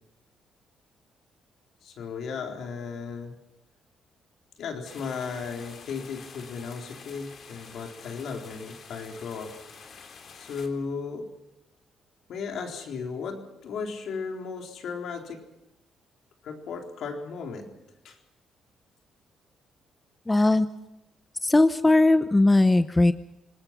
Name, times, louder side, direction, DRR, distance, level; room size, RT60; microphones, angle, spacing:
voice 1, 1.8-3.3 4.6-9.6 9.9-10.0 10.3-11.3 12.3-15.4 16.4-17.7 18.0-18.2, left 5 dB, 70° left, 2 dB, 4.1 m, -35 dB
sound 1, 4.8-10.7, left 5 dB, 55° left, 3.6 m, -48 dB
voice 2, 20.3-20.7 21.4-23.1, left 2 dB, 15° left, 11 dB, 0.8 m, -19 dB
26.5 x 20.0 x 6.1 m, 0.94 s
cardioid pair, 90°, 0 cm